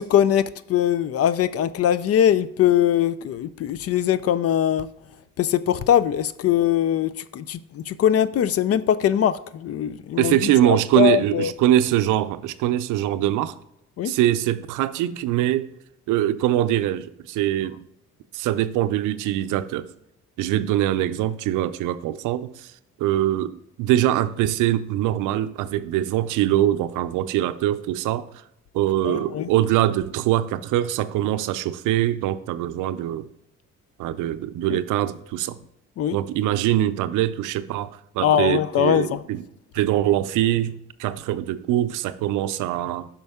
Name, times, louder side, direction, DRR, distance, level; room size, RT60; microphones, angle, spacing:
voice 1, 0.0-4.9 5.4-11.5 14.0-14.1 29.0-29.5 34.7-34.8 36.0-36.2 38.2-39.2, left 10 dB, 55° left, 16 dB, 0.4 m, -21 dB
voice 2, 10.2-13.6 14.0-15.7 16.1-17.8 18.3-19.9 20.4-22.7 23.0-28.3 28.7-33.3 34.0-35.6 36.1-39.4 39.7-43.1, right 13 dB, 90° right, 13 dB, 0.5 m, -23 dB
5.7 x 5.2 x 3.5 m, 0.79 s
cardioid pair, 90°, 30 cm